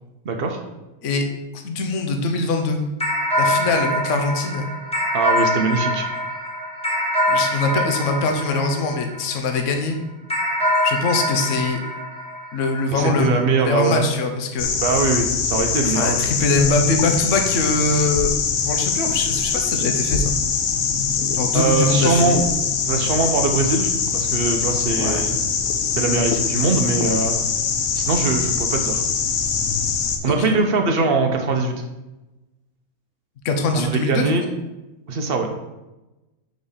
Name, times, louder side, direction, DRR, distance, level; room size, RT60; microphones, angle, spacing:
voice 1, 0.2-0.6 5.1-6.1 12.9-14.1 14.8-16.2 21.5-22.4 22.8-25.4 25.9-27.3 27.9-29.0 30.2-31.8 33.7-34.4 35.1-35.5, right 3 dB, 50° right, 4 dB, 0.8 m, -21 dB
voice 2, 1.5-2.8 3.4-4.7 7.3-10.0 10.8-11.8 12.5-14.7 15.8-18.3 18.6-20.3 21.3-22.4 25.0-25.3 30.3-30.5 33.4-34.2, left 3 dB, 60° left, 4 dB, 1.1 m, -22 dB
sound 1, 3.0-9.6 10.3-13.1, left 1 dB, 5° left, 1.4 m, -24 dB
sound 2, 14.6-30.2, left 6 dB, 85° left, 1.2 m, -23 dB
5.0 x 4.0 x 5.6 m, 1.0 s
omnidirectional pair, 1.5 m